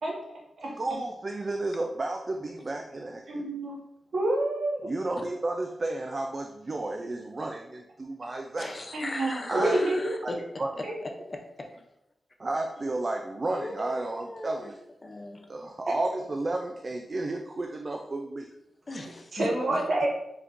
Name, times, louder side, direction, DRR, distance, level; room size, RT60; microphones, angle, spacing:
voice 1, 0.8-3.4 4.8-8.7 9.5-9.8 10.2-10.3 10.6-10.7 12.4-14.8 15.5-18.5, right 2 dB, 35° right, 2 dB, 0.3 m, -32 dB
voice 2, 3.3-3.8 4.1-4.9 8.9-10.1 10.8-10.9 19.3-20.1, right 1 dB, 70° right, -4 dB, 1.3 m, -27 dB
voice 3, 8.6-10.4 10.8-11.7 13.4-14.7 15.0-15.5 18.9-19.5, left 2 dB, 30° left, 4 dB, 0.5 m, -38 dB
4.7 x 3.6 x 2.5 m, 0.84 s
wide cardioid pair, 115°, 0 cm